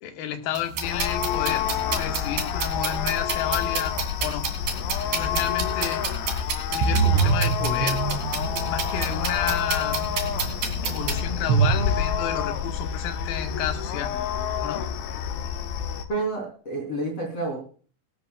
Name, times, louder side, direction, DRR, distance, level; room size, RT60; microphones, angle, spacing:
voice 1, 0.0-4.5 5.1-6.0 6.7-8.0 8.7-10.1 10.8-14.1 14.6-14.9, left 9 dB, 65° left, 5 dB, 2.9 m, -31 dB
sound 1, 0.6-11.1, right 6 dB, 55° right, 4.1 m, -31 dB
sound 2, 0.8-16.1, left 9 dB, 90° left, 3.6 m, -28 dB
sound 3, 6.8-12.8, right 6 dB, 90° right, 4.5 m, -26 dB
voice 2, 16.1-17.6, right 2 dB, 35° left, 0 dB, 3.8 m, -29 dB
22.0 x 12.5 x 2.4 m, 0.41 s
omnidirectional pair, 5.2 m